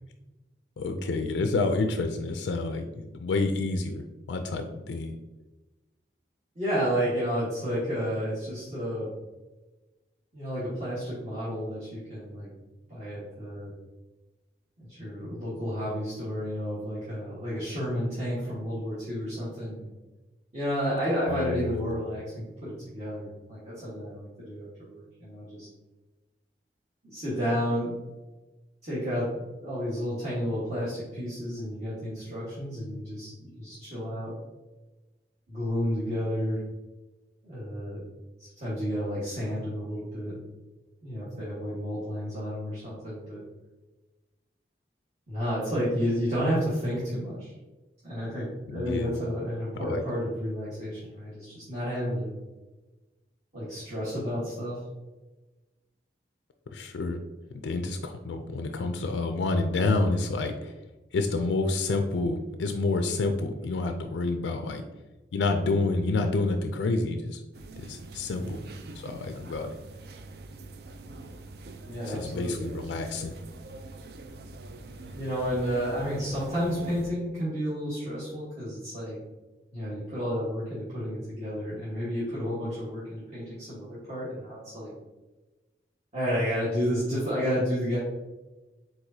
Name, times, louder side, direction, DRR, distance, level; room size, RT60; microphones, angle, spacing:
voice 1, 0.8-4.0 4.3-5.2 21.3-22.0 48.7-49.2 49.8-50.0 56.7-57.2 57.6-60.7 61.1-64.8 65.3-67.4 67.8-68.6 69.0-69.7 72.1-73.4, left 3 dB, 85° left, 6 dB, 0.4 m, -28 dB
voice 2, 6.5-9.1 10.3-12.5 12.9-13.7 14.8-19.9 20.5-25.7 27.0-28.0 28.8-29.3 29.6-34.3 35.5-36.6 37.4-38.0 38.4-40.3 41.0-43.4 45.3-47.5 48.0-52.3 53.5-54.8 68.4-68.7 71.9-72.7 75.1-79.2 79.7-84.9 86.1-88.0, equal, 40° right, -9 dB, 1.4 m, -31 dB
sound 1, 67.5-77.1, right 2 dB, 60° right, 0.4 m, -44 dB
4.7 x 3.9 x 2.7 m, 1.1 s
head